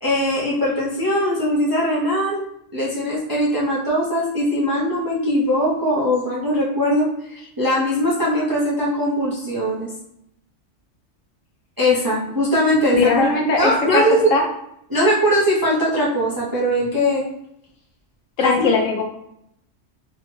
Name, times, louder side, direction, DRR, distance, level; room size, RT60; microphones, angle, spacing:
voice 1, 0.0-2.4 2.7-9.9 11.8-13.3 13.6-14.3 14.9-17.2 18.4-18.7, equal, 25° right, -6 dB, 0.4 m, -20 dB
voice 2, 12.9-14.4 18.4-19.0, left 4 dB, 80° left, 2 dB, 1.1 m, -19 dB
3.6 x 2.1 x 3.0 m, 0.76 s
omnidirectional pair, 1.3 m